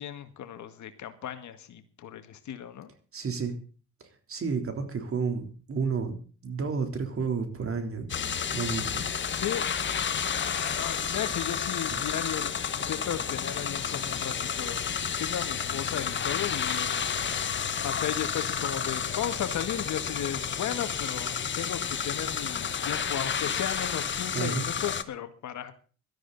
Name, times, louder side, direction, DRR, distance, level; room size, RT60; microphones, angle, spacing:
voice 1, 0.0-2.9 9.3-9.7 10.4-14.9 15.2-17.0 17.3-25.7, left 10 dB, 65° left, 10 dB, 1.9 m, -35 dB
voice 2, 3.1-3.6 4.0-6.2 6.4-8.1 8.5-9.0 11.9-12.0 24.3-24.6, right 5 dB, 45° right, 6 dB, 3.6 m, -31 dB
sound 1, 8.1-25.0, left 7 dB, 35° left, 1.2 m, -31 dB
17.5 x 12.5 x 4.1 m, 0.38 s
cardioid pair, 100°, 31 cm